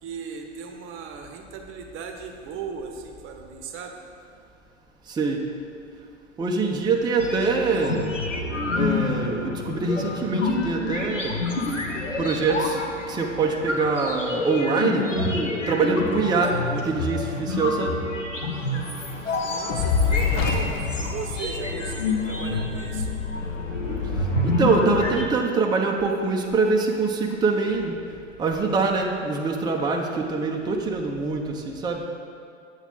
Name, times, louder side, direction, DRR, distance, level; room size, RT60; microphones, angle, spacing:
voice 1, 0.0-4.0 19.4-23.2, right 6 dB, 35° right, 4 dB, 0.9 m, -37 dB
voice 2, 5.1-5.4 6.4-8.2 8.8-11.4 12.2-12.8 13.1-18.0 24.4-28.0 28.4-32.1, right 4 dB, 10° right, 1 dB, 0.6 m, -24 dB
sound 1, 7.2-25.3, left 3 dB, 90° left, 1.0 m, -28 dB
Fire, 19.7-22.1, left 6 dB, 55° left, 0.8 m, -25 dB
8.1 x 7.1 x 3.8 m, 2.4 s
figure-of-eight pair, 90°, 36 cm